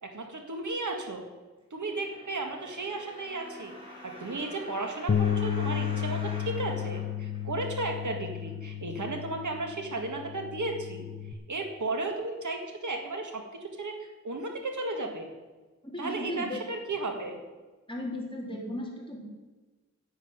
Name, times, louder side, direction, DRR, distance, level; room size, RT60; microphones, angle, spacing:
voice 1, 0.0-1.2 1.7-11.1 11.5-15.3 16.0-17.4, right 2 dB, 80° right, 3 dB, 1.9 m, -34 dB
sound 1, 1.9-7.9 8.5-8.6, left 1 dB, 15° right, 5.3 m, -46 dB
Bass guitar, 5.1-11.3, left 8 dB, 45° left, 0.8 m, -32 dB
voice 2, 15.8-16.6 17.9-19.3, left 1 dB, 15° left, -2 dB, 3.7 m, -36 dB
10.5 x 7.5 x 9.6 m, 1.2 s
wide cardioid pair, 85°, 30 cm